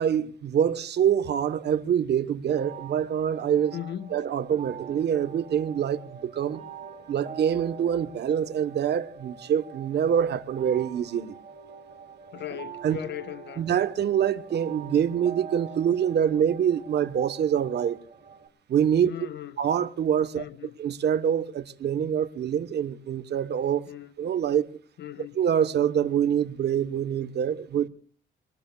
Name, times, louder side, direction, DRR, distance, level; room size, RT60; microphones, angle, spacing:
voice 1, 0.0-3.7 4.1-6.6 7.1-11.3 12.8-13.0 13.6-18.0 18.7-19.1 19.6-20.5 20.8-23.8 24.2-24.7 25.3-27.9, right 9 dB, 60° right, 1.1 m, -25 dB
sound 1, 2.5-18.5, right 7 dB, 35° right, 2.7 m, -44 dB
voice 2, 3.7-4.2 12.3-13.7 19.0-19.6 20.3-20.8 23.9-24.1 25.0-25.4, left 10 dB, 65° left, 1.1 m, -38 dB
26.0 x 19.5 x 2.3 m
cardioid pair, 145°, 19 cm